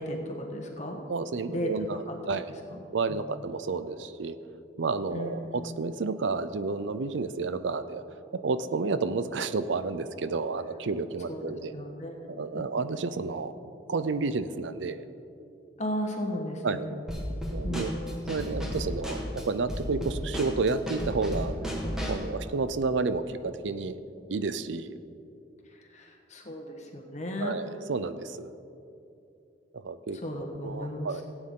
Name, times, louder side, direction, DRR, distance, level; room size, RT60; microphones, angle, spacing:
voice 1, 0.0-1.0 1.5-1.7 2.1-2.2 2.7-2.8 3.1-3.2 5.1-5.3 11.3-12.1 12.5-12.6 15.8-17.0 17.6-17.9 25.7-27.6 30.2-31.2, equal, 40° left, 1 dB, 1.3 m, -35 dB
voice 2, 1.1-2.0 2.3-2.5 2.9-4.4 4.8-8.0 8.3-11.7 12.4-13.5 13.9-15.0 16.6-16.9 17.5-17.9 18.3-21.5 22.1-24.0 24.3-25.0 27.4-28.5 29.7-30.2 30.6-31.2, right 4 dB, 75° right, 12 dB, 0.5 m, -30 dB
Drum kit / Snare drum, 17.1-22.3, equal, 5° right, 1.5 m, -34 dB
16.5 x 8.9 x 3.8 m, 2.7 s
head